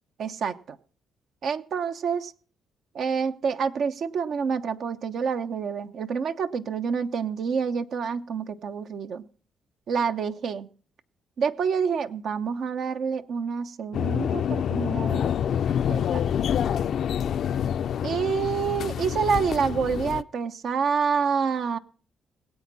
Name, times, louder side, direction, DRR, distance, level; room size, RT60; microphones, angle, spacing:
voice 1, 0.2-0.8 1.4-2.3 2.9-9.2 9.9-10.7 11.4-15.3 15.9-16.3 18.0-21.8, right 6 dB, 65° right, 9 dB, 0.9 m, -27 dB
sound 1, 13.9-20.2, left 9 dB, 65° left, 0.5 m, -27 dB
21.5 x 8.4 x 4.1 m, 0.42 s
cardioid pair, 85°, 0 cm